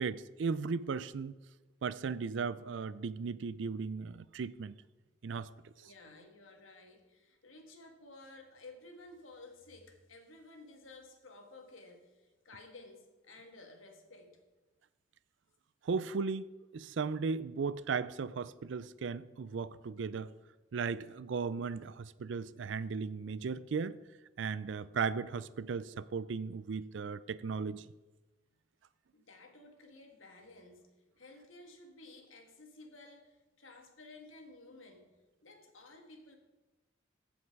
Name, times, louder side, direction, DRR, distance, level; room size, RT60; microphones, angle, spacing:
voice 1, 0.0-1.3 1.8-4.8 5.2-5.5 15.8-20.3 20.7-24.0 24.4-27.9, right 5 dB, 70° right, 0.4 m, -36 dB
voice 2, 5.8-14.4 29.1-35.1 35.4-36.4, left 2 dB, 90° left, 1.6 m, -54 dB
15.0 x 5.4 x 4.7 m
head